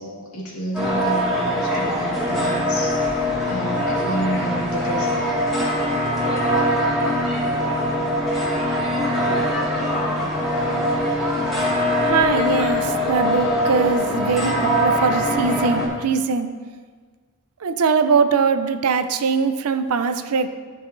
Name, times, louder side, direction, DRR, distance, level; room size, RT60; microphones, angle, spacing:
voice 1, 0.0-5.2, right 1 dB, 85° left, -4 dB, 2.1 m, -30 dB
sound 1, 0.7-15.9, equal, ahead, 2.0 m, -22 dB
voice 2, 12.0-16.5 17.6-20.5, right 5 dB, 80° right, 10 dB, 0.5 m, -21 dB
13.0 x 5.5 x 2.6 m, 1.5 s
head